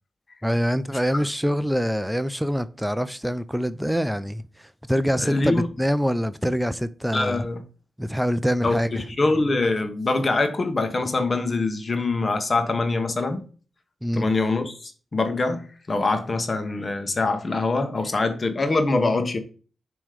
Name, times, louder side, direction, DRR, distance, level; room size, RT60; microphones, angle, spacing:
voice 1, 0.4-7.5 8.0-8.9 14.0-14.3, equal, 5° right, 0.5 m, -25 dB
voice 2, 5.2-5.7 7.1-7.6 8.6-13.4 14.1-19.4, left 3 dB, 45° left, 1.2 m, -24 dB
7.4 x 3.1 x 5.0 m
supercardioid pair, 45°, 0 cm